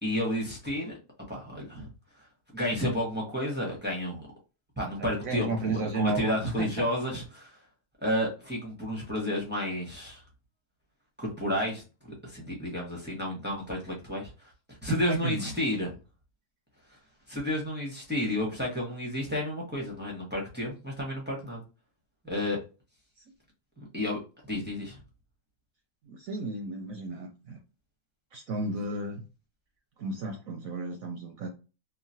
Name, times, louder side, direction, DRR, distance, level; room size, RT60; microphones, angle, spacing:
voice 1, 0.0-1.0 1.3-1.9 2.5-4.3 4.8-7.5 8.0-10.2 11.2-14.3 14.8-15.9 17.3-21.6 22.2-22.6 23.9-24.2 24.5-25.0, left 1 dB, 10° right, -2 dB, 0.6 m, -31 dB
voice 2, 5.0-6.9 15.1-15.5 24.5-24.6 26.1-27.6 28.3-29.2 30.0-31.5, right 3 dB, 70° right, 3 dB, 0.9 m, -33 dB
3.0 x 2.4 x 2.6 m, 0.31 s
omnidirectional pair, 1.8 m